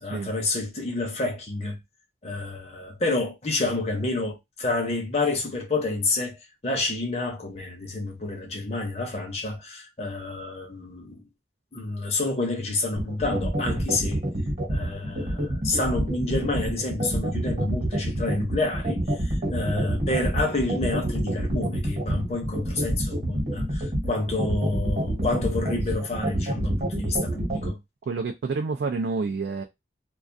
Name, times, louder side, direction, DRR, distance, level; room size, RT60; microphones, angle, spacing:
voice 1, 0.0-1.8 2.2-11.2 11.7-14.2 14.7-27.8, left 2 dB, 35° left, 0.6 m, -29 dB
sound 1, 13.0-27.7, right 1 dB, 45° right, 1.0 m, -27 dB
voice 2, 28.1-29.6, right 4 dB, 75° right, 0.3 m, -28 dB
2.3 x 2.3 x 2.5 m
head